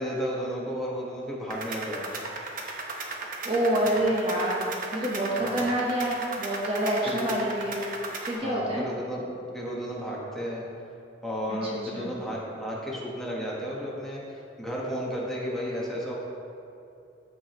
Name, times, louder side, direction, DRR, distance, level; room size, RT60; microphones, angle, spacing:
voice 1, 0.0-2.2 3.8-4.0 5.4-5.7 7.0-7.3 8.3-9.3 9.5-10.7 11.2-16.2, equal, ahead, -5 dB, 1.3 m, -33 dB
sound 1, 1.5-8.3, right 3 dB, 50° right, 0.9 m, -36 dB
voice 2, 3.4-7.8 8.2-8.9 11.5-12.1, right 1 dB, 30° right, -4 dB, 1.0 m, -27 dB
14.0 x 4.8 x 3.1 m, 2.7 s
head